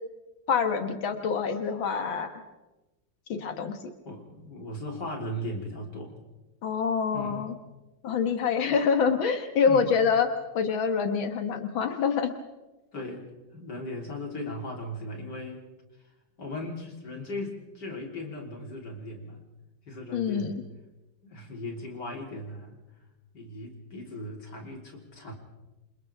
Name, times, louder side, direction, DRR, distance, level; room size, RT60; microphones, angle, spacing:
voice 1, 0.5-2.3 3.3-3.8 6.6-7.5 8.0-10.3 10.6-12.3 20.1-20.5, left 6 dB, 90° left, 6 dB, 2.2 m, -26 dB
voice 2, 4.0-6.2 7.1-7.5 9.6-9.9 12.9-13.2 13.5-15.6 16.4-19.4 19.9-20.6 21.2-22.8 23.3-25.3, left 1 dB, 60° left, 0 dB, 4.3 m, -37 dB
28.0 x 27.0 x 3.6 m, 1.1 s
omnidirectional pair, 2.1 m